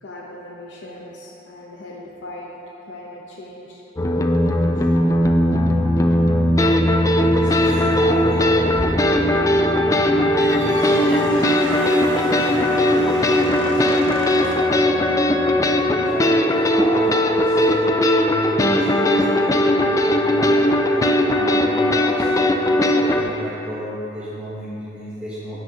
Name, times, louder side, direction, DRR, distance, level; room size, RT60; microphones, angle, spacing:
voice 1, 0.0-3.8 4.5-4.9, left 1 dB, 70° left, -3 dB, 0.7 m, -39 dB
sound 1, 4.0-23.2, left 1 dB, 15° left, 0.3 m, -18 dB
voice 2, 7.2-9.5 10.0-15.1 15.5-16.4 16.7-25.6, equal, 5° right, -9 dB, 0.8 m, -33 dB
sound 2, 10.3-14.8, right 2 dB, 70° right, 0.7 m, -33 dB
9.9 x 6.1 x 2.8 m, 2.9 s
head